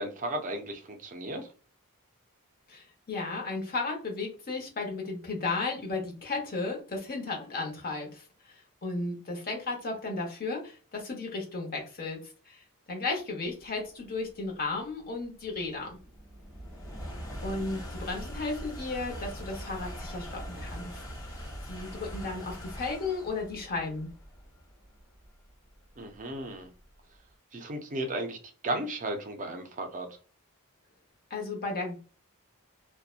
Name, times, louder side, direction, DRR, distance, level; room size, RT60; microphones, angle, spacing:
voice 1, 0.0-1.5 26.0-26.7 27.5-28.4 28.6-30.1, right 1 dB, 35° right, 5 dB, 0.5 m, -34 dB
voice 2, 2.7-8.2 8.8-12.2 12.5-12.6 12.9-16.0 17.4-21.0 21.7-24.1 31.3-32.0, left 3 dB, 40° left, 1 dB, 0.9 m, -34 dB
sound 1, 13.8-27.2, equal, 15° left, 1.3 m, -42 dB
2.7 x 2.2 x 2.4 m, 0.37 s
head